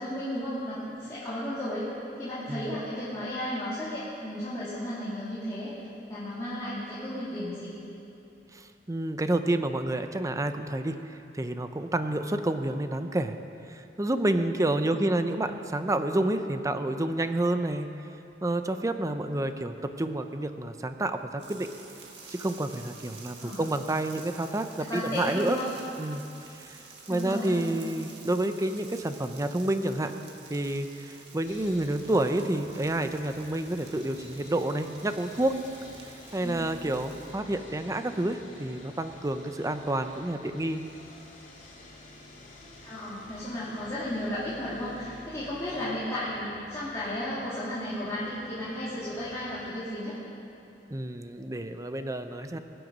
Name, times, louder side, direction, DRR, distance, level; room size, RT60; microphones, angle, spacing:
voice 1, 0.0-1.9 2.1-5.7 6.1-7.8 14.9-15.3 23.4-23.6 24.8-25.7 27.1-27.7 36.4-36.7 42.8-50.1, left 1 dB, 20° left, -12 dB, 2.8 m, -34 dB
voice 2, 8.5-11.0 11.3-13.4 13.7-17.9 18.4-21.2 21.5-21.7 22.3-25.6 26.0-26.2 26.7-26.8 27.1-30.1 30.5-30.9 31.3-35.6 36.3-40.8 50.9-52.6, right 1 dB, 20° right, 8 dB, 0.6 m, -29 dB
sound 1, 21.4-37.3, right 4 dB, 70° right, 1.8 m, -50 dB
Sawing, 31.4-49.7, left 1 dB, 45° left, 2.4 m, -50 dB
22.0 x 7.9 x 5.3 m, 2.8 s
head